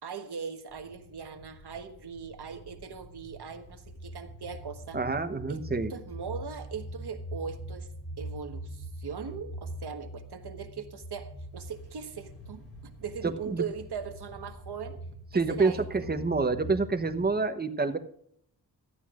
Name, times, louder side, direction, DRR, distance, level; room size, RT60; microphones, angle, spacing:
voice 1, 0.0-5.0 5.5-5.6 5.9-7.9 8.2-15.0 15.3-16.1, right 6 dB, 75° right, 7 dB, 1.4 m, -40 dB
sound 1, 0.7-17.3, equal, 35° left, 3.2 m, -43 dB
voice 2, 4.9-5.9 13.2-13.6 15.3-18.0, right 4 dB, 25° right, 9 dB, 1.0 m, -27 dB
17.0 x 12.0 x 2.5 m, 0.68 s
wide cardioid pair, 140°, 40 cm